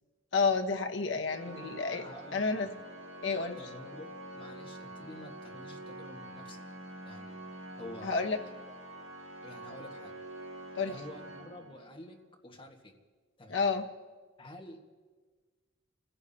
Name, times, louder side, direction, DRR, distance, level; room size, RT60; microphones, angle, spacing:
voice 1, 0.3-2.0 2.3-2.7 3.2-3.6 8.0-8.4 10.8-11.0 13.5-13.8, left 4 dB, 70° left, 5 dB, 1.1 m, -30 dB
Organ, 1.3-12.2, right 1 dB, 90° right, 1.7 m, -46 dB
voice 2, 1.4-2.7 3.6-6.6 7.0-7.4 7.7-8.2 9.0-9.1 9.4-10.1 10.9-12.9 13.4-13.6 14.4-14.8, left 1 dB, 25° left, 2 dB, 1.5 m, -49 dB
29.5 x 15.5 x 2.8 m, 1.4 s
head